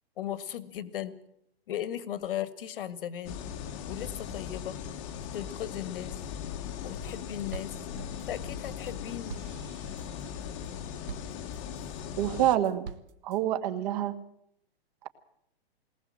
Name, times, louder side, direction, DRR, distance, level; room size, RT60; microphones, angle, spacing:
voice 1, 0.2-1.2 1.7-3.4 3.9-4.8 5.3-6.2 6.8-7.8 8.3-9.4, left 11 dB, 60° left, 14 dB, 1.8 m, -37 dB
sound 1, 3.2-12.6, left 8 dB, 30° left, 1.3 m, -39 dB
sound 2, 6.6-7.2 7.5-12.0 12.4-13.4, right 6 dB, 60° right, 1.7 m, -46 dB
voice 2, 12.2-12.9 13.2-14.1, right 12 dB, 40° right, 9 dB, 1.8 m, -27 dB
20.5 x 19.5 x 7.5 m, 0.73 s
hypercardioid pair, 160°, 31 cm